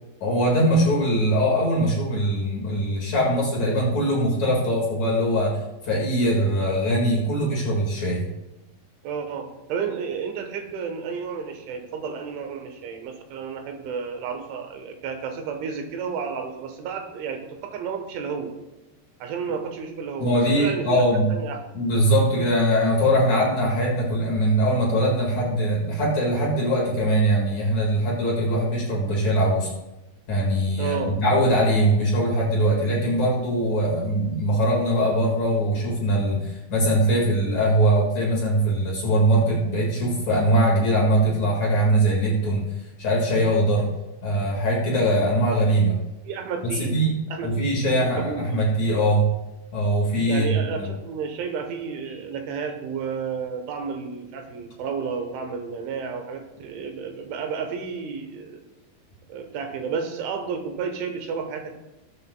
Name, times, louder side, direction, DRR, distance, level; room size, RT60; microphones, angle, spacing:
voice 1, 0.2-8.3 20.2-21.3 21.7-29.7 30.3-42.7 43.0-43.9 44.2-46.0 46.8-47.2 47.4-49.3 49.7-50.9, right 1 dB, 50° left, -3 dB, 2.5 m, -22 dB
voice 2, 9.0-18.5 19.2-20.3 20.6-21.0 21.3-21.6 30.8-31.1 46.3-46.9 47.3-48.4 50.3-58.6 59.3-61.8, right 6 dB, 85° right, 5 dB, 3.6 m, -31 dB
19.0 x 7.9 x 2.3 m, 1.0 s
omnidirectional pair, 5.3 m